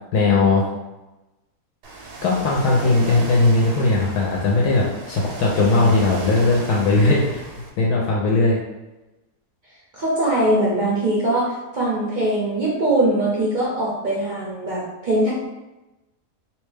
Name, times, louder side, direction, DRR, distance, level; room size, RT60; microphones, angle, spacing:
voice 1, 0.1-0.7 2.2-7.4 7.8-8.6, left 3 dB, 80° left, -3 dB, 1.1 m, -18 dB
Ocean, 1.8-7.7, right 3 dB, 85° right, 1.2 m, -35 dB
voice 2, 9.9-15.3, right 1 dB, 60° right, -7 dB, 0.5 m, -21 dB
2.8 x 2.2 x 3.2 m, 1.0 s
omnidirectional pair, 1.7 m